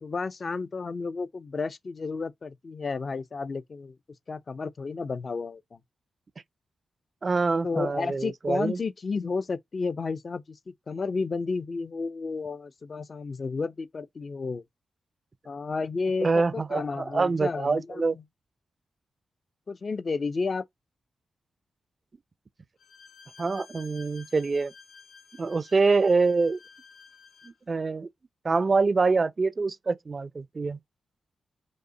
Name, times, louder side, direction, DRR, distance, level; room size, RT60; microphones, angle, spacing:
voice 1, 0.0-4.0 4.3-5.8 7.6-10.6 10.9-14.6 15.4-18.0 19.7-20.6, left 4 dB, 50° left, 0.5 m, -32 dB
voice 2, 7.2-8.8 16.2-18.2 23.4-24.7 25.4-26.6 27.4-28.1 28.4-30.8, right 4 dB, 45° right, 0.4 m, -25 dB
Bowed string instrument, 22.8-27.6, left 5 dB, 80° left, 0.8 m, -52 dB
5.3 x 2.1 x 3.7 m
cardioid pair, 60°, 0 cm